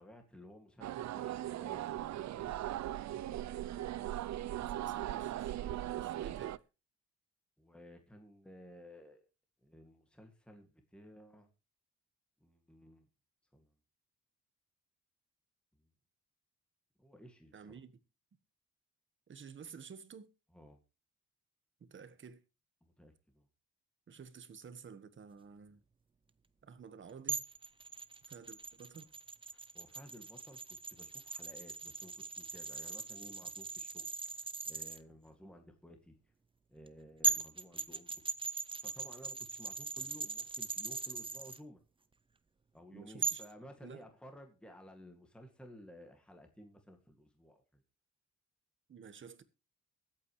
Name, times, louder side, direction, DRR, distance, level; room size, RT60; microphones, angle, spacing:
voice 1, 0.0-2.5 5.8-6.1 7.6-9.3 9.6-11.5 12.4-13.1 13.5-13.7 17.0-17.8 20.5-20.8 22.8-23.5 29.5-36.1 36.7-38.2 38.8-41.8 42.7-47.8, equal, 5° left, 2.1 m, -55 dB
sound 1, 0.8-6.6, right 13 dB, 65° right, 0.6 m, -39 dB
voice 2, 4.5-6.6 17.5-17.9 19.3-20.3 21.8-22.4 24.1-25.8 26.6-27.4 28.3-29.1 42.9-43.4 43.8-44.0 48.9-49.4, right 6 dB, 40° right, 1.4 m, -52 dB
sound 2, 27.3-35.0 36.9-37.0 37.2-41.6 43.2-43.5, right 4 dB, 15° right, 0.7 m, -39 dB
23.0 x 8.6 x 3.2 m
cardioid pair, 130°, 30 cm